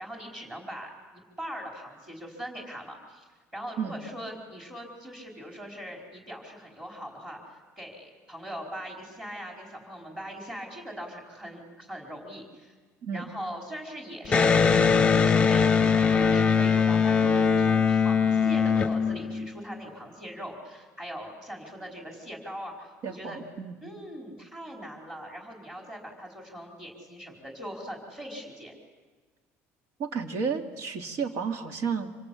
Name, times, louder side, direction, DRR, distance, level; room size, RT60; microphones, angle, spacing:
voice 1, 0.0-3.3 3.5-12.7 13.1-14.7 15.2-23.4 23.8-28.7, equal, 15° right, 0 dB, 4.9 m, -41 dB
Electric guitar, 14.3-19.8, left 6 dB, 20° left, 0.9 m, -22 dB
voice 2, 23.0-23.7 30.0-32.1, right 6 dB, 65° right, 5 dB, 2.7 m, -32 dB
26.5 x 26.0 x 8.7 m, 1.4 s
cardioid pair, 160°, 5 cm